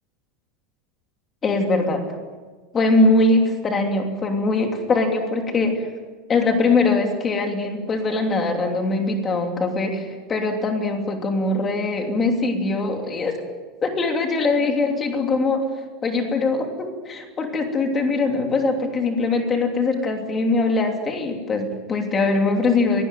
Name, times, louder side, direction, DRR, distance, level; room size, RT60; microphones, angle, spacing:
voice 1, 1.4-2.0 2.7-5.9 6.3-13.4 13.8-15.6 16.0-23.0, left 3 dB, 15° left, 3 dB, 3.0 m, -22 dB
22.5 x 18.5 x 9.3 m, 1.4 s
supercardioid pair, 175°, 0 cm